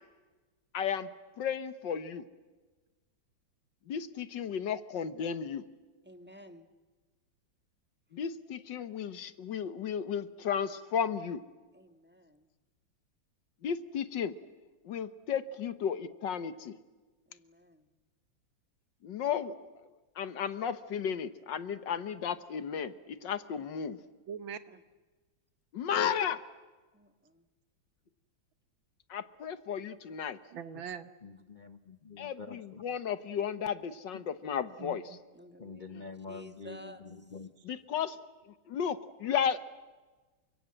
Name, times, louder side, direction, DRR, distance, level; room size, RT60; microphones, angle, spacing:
voice 1, 0.7-1.1 1.4-2.2 3.9-5.6 8.1-11.4 13.6-14.3 14.8-16.8 19.0-19.5 20.2-24.0 25.7-26.4 29.1-30.4 32.2-35.2 37.6-38.2 38.7-39.6, left 8 dB, 65° left, 12 dB, 1.7 m, -34 dB
voice 2, 6.0-6.7 11.7-12.5 17.3-17.9 24.7-24.8 26.9-27.5 35.3-37.0, equal, 5° right, 7 dB, 1.3 m, -53 dB
voice 3, 24.3-24.8 30.5-31.1 34.8-35.2, right 7 dB, 75° right, 12 dB, 2.0 m, -42 dB
voice 4, 31.2-32.9 35.6-37.7, left 4 dB, 40° left, 10 dB, 0.6 m, -47 dB
28.5 x 25.0 x 7.8 m, 1.3 s
omnidirectional pair, 2.2 m